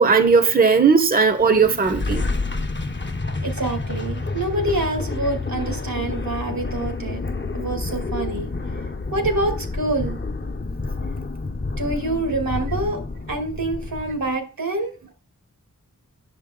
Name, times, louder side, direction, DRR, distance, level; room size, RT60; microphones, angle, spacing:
voice 1, 0.0-2.2, right 5 dB, 25° right, 0.8 m, -17 dB
sound 1, 1.2-14.3, left 3 dB, 35° left, 0.8 m, -29 dB
voice 2, 3.4-7.2 7.5-8.5 9.1-10.2 11.8-13.0 13.3-15.1, right 2 dB, 85° right, 2.4 m, -26 dB
9.5 x 6.7 x 3.8 m
wide cardioid pair, 45°, 34 cm